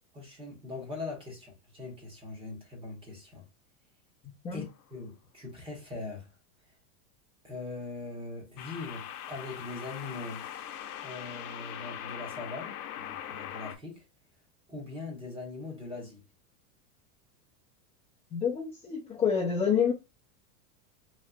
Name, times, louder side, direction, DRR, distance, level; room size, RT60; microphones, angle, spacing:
voice 1, 0.1-3.5 4.5-4.7 4.9-6.3 6.7-6.8 7.4-10.5 11.0-14.1 14.7-16.2, left 3 dB, 10° right, 1.1 m, -41 dB
sound 1, 4.6-4.9 8.6-13.8, left 10 dB, 85° left, 0.8 m, -41 dB
voice 2, 18.3-19.9, left 7 dB, 15° left, 0.6 m, -27 dB
3.1 x 3.0 x 2.3 m
supercardioid pair, 150°, 44 cm